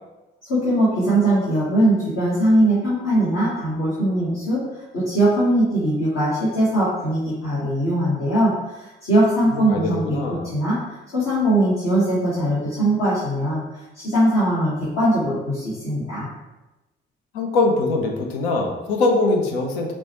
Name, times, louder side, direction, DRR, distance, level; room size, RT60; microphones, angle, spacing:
voice 1, 0.5-16.3, right 1 dB, 60° left, -10 dB, 1.3 m, -21 dB
voice 2, 9.5-10.5 17.3-19.9, left 3 dB, 80° left, 2 dB, 0.6 m, -22 dB
6.0 x 2.2 x 2.9 m, 1.0 s
hypercardioid pair, 40°, 29 cm